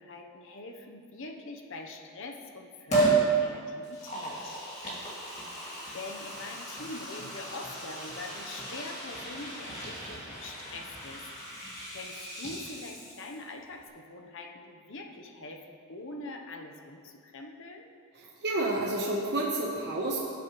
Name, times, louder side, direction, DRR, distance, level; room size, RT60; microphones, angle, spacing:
voice 1, 0.0-4.6 5.5-11.2 11.5-17.9, left 2 dB, 60° left, 3 dB, 1.0 m, -44 dB
Liquid, 2.9-3.3 3.8-13.5 13.8-13.9, right 3 dB, 30° left, 2.5 m, -34 dB
voice 2, 18.2-20.2, right 2 dB, 50° right, -4 dB, 1.2 m, -30 dB
18.0 x 7.5 x 3.2 m, 2.3 s
head